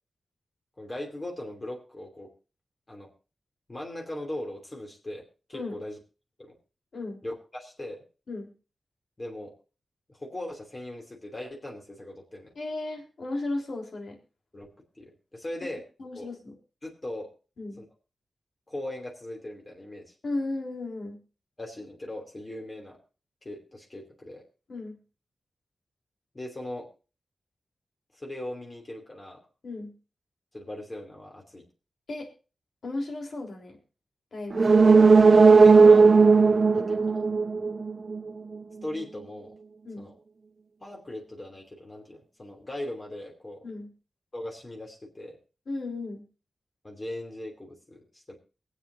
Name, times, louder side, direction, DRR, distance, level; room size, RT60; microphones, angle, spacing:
voice 1, 0.8-2.3 2.9-3.1 3.7-6.0 6.4-6.6 7.2-8.0 9.2-9.5 10.1-12.5 14.5-14.7 15.0-15.8 16.1-16.3 16.8-17.3 17.8-17.9 18.7-20.1 21.6-23.0 23.4-24.4 26.3-26.9 28.1-29.4 30.5-31.6 35.5-36.2 36.7-37.2 38.8-39.5 40.0-40.1 40.8-43.7 44.3-45.4 46.8-48.4, left 1 dB, 30° left, 0 dB, 2.9 m, -39 dB
voice 2, 6.9-7.2 8.3-8.5 12.6-14.2 15.6-15.7 16.0-16.5 17.6-17.8 20.2-21.2 24.7-25.0 29.6-29.9 32.1-32.3 32.8-33.8 34.3-34.7 39.8-40.1 43.6-43.9 45.7-46.3, left 2 dB, 70° left, 1 dB, 3.6 m, -35 dB
sound 1, 34.5-38.2 38.5-38.6, right 4 dB, 50° right, 0.8 m, -16 dB
24.0 x 8.2 x 2.7 m, 0.34 s
wide cardioid pair, 95°, 0 cm